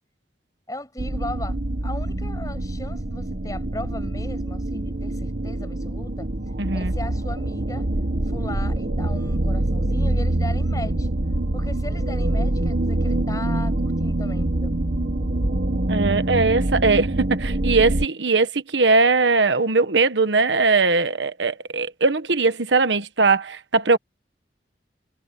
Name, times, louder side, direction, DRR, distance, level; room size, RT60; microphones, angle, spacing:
voice 1, 0.7-1.6 1.8-6.3 6.7-7.9 8.3-11.1 11.5-14.7, left 1 dB, 20° left, 6.8 m, -37 dB
sound 1, 1.0-18.1, right 1 dB, 55° right, 1.3 m, -25 dB
voice 2, 6.6-6.9 15.9-24.0, right 3 dB, 85° right, 1.3 m, -20 dB
head